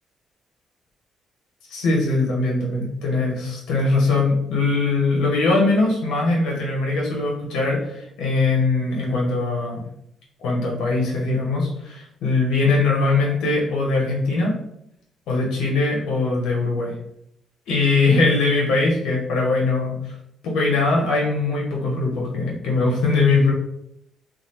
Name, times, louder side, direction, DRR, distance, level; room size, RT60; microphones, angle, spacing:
voice 1, 1.7-9.8 10.4-14.5 15.3-17.0 17.7-20.1 20.4-23.5, left 3 dB, 85° left, -2 dB, 0.8 m, -21 dB
3.1 x 2.4 x 2.8 m, 0.75 s
cardioid pair, 90°, 0 cm